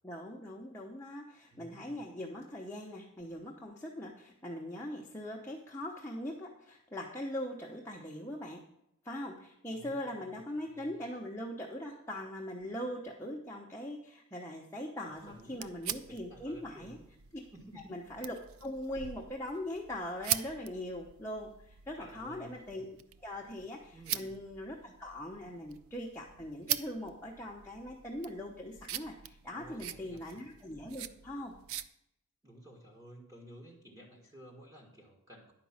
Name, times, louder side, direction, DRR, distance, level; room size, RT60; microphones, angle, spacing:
voice 1, 0.0-8.6 9.0-17.0 17.9-18.3 18.6-22.9 23.2-31.5, left 1 dB, 10° left, -3 dB, 0.9 m, -41 dB
voice 2, 1.5-2.0 9.7-10.4 10.7-11.0 15.0-17.0 17.5-17.9 22.0-22.6 23.9-24.3 29.5-30.2 32.4-35.5, equal, 15° right, -2 dB, 1.6 m, -53 dB
sound 1, 15.2-31.9, right 11 dB, 85° right, 0.5 m, -43 dB
10.5 x 5.2 x 7.2 m, 0.79 s
head